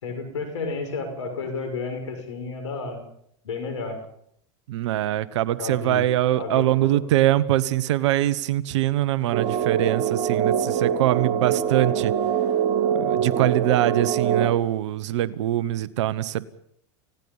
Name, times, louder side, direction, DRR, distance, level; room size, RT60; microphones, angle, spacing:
voice 1, 0.0-3.0 3.4-4.0 5.6-6.0 6.4-7.0, left 4 dB, 90° left, 6 dB, 6.5 m, -31 dB
voice 2, 4.7-12.1 13.0-16.4, right 13 dB, 80° right, 16 dB, 1.1 m, -23 dB
sound 1, 9.3-14.5, right 8 dB, 55° right, 5.0 m, -24 dB
29.0 x 17.5 x 5.6 m, 0.70 s
hypercardioid pair, 100°, 15 cm